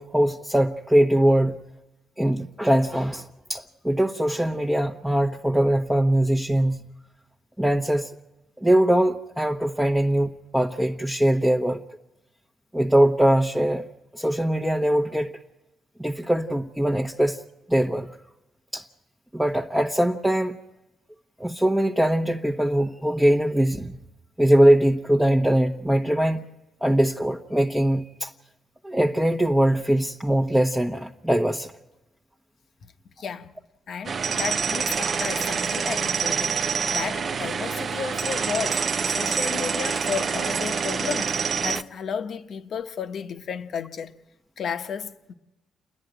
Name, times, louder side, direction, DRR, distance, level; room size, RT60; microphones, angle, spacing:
voice 1, 0.0-1.6 2.2-6.8 7.6-8.1 8.6-11.8 12.7-13.8 14.1-15.3 16.0-17.4 17.7-18.1 18.7-18.9 19.3-20.6 21.4-23.9 24.4-26.4 26.8-28.3 28.8-31.7, right 1 dB, 5° right, 1.0 m, -22 dB
voice 2, 33.2-33.5 33.9-44.1 44.6-45.3, left 7 dB, 60° left, 1.0 m, -33 dB
sound 1, 34.0-41.8, right 6 dB, 45° right, 0.7 m, -26 dB
29.0 x 10.5 x 9.1 m
cardioid pair, 90°, 0 cm